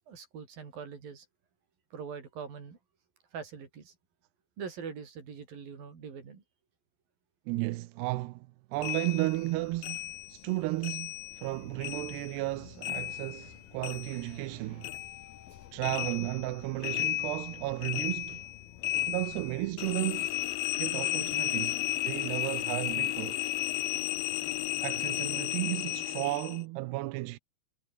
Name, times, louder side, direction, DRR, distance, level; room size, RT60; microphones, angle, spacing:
voice 1, 0.1-1.3 1.9-2.8 3.3-4.0 4.6-6.4 20.7-20.8 23.8-24.9, right 6 dB, 55° right, 5.9 m, -44 dB
voice 2, 7.5-15.0 15.7-18.5 19.1-20.4 20.8-23.4 24.8-27.4, right 20 dB, 80° right, 2.6 m, -34 dB
sound 1, 8.8-11.5 11.8-14.6 14.8-26.6, left 16 dB, 75° left, 2.3 m, -34 dB
sound 2, 11.3-22.3, left 10 dB, 55° left, 3.4 m, -56 dB
omnidirectional pair, 5.1 m